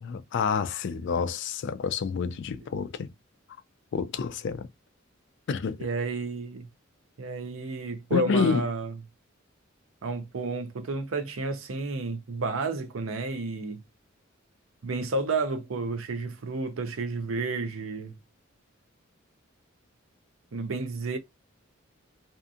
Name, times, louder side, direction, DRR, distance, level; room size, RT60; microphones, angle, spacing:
voice 1, 0.0-3.1 3.9-4.7 5.5-5.9 8.1-8.6, left 5 dB, 60° left, 0.4 m, -28 dB
voice 2, 5.8-6.7 7.2-8.9 10.0-13.8 14.8-18.2 20.5-21.2, right 3 dB, 80° right, 0.6 m, -31 dB
2.7 x 2.5 x 2.3 m
head